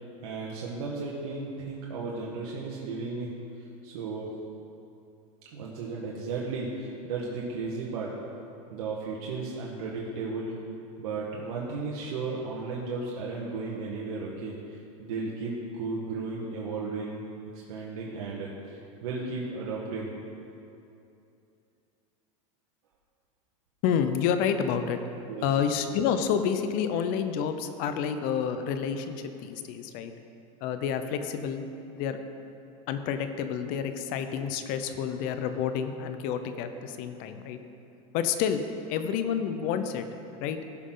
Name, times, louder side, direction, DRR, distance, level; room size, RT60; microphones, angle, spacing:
voice 1, 0.2-4.3 5.5-8.2 8.7-10.6 11.0-17.2 17.5-20.1 25.3-25.5, right 3 dB, 80° right, -4 dB, 1.5 m, -35 dB
voice 2, 23.8-25.0 25.4-30.1 30.6-31.7 32.0-32.2 32.9-37.6 38.1-38.6 38.9-40.0 40.4-40.6, left 7 dB, 50° left, 9 dB, 0.8 m, -29 dB
16.0 x 6.2 x 3.9 m, 2.7 s
supercardioid pair, 130°, 18 cm